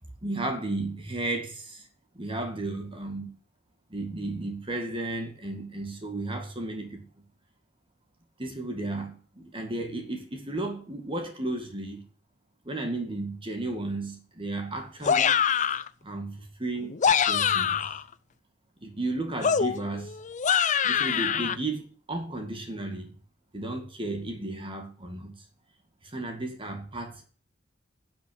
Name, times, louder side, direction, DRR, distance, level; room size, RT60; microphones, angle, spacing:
voice 1, 0.2-1.9 2.1-3.3 3.9-7.0 8.4-12.0 12.7-15.4 16.0-17.0 17.3-17.8 18.8-20.2 20.8-23.1 23.5-25.4 26.0-27.3, right 2 dB, 30° right, 2.1 m, -34 dB
sound 1, 15.0-15.9 16.8-18.0 19.4-21.6, left 7 dB, 40° left, 0.6 m, -24 dB
11.5 x 6.2 x 8.9 m
head